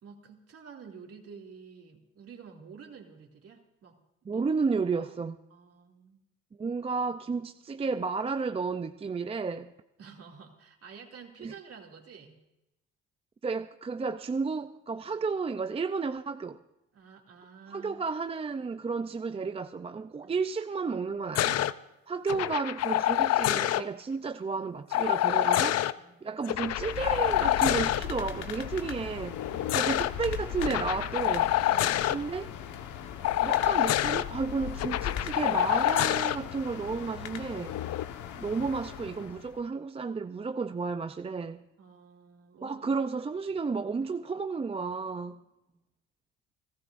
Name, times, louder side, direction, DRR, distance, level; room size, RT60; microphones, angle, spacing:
voice 1, 0.0-4.4 4.9-5.1 5.5-6.2 10.0-12.4 16.9-17.9 20.2-20.3 26.0-26.2 29.5-29.9 31.7-32.3 41.8-42.8 45.7-45.8, right 6 dB, 50° right, 2.6 m, -50 dB
voice 2, 4.3-5.4 6.6-9.7 11.4-11.5 13.4-16.6 17.7-21.7 22.1-25.8 26.2-29.4 29.7-31.5 32.1-32.5 33.4-37.8 38.4-41.6 42.6-45.4, right 4 dB, 20° right, 0.5 m, -32 dB
sound 1, 21.3-21.7 22.3-23.8 24.9-25.9 26.4-28.0 29.3-30.1 30.6-32.2 33.2-34.2 34.8-36.4 37.6-38.0, left 13 dB, 55° left, 0.6 m, -27 dB
sound 2, 26.6-39.6, left 9 dB, 75° left, 1.3 m, -39 dB
29.5 x 14.5 x 2.6 m
supercardioid pair, 85°, 30 cm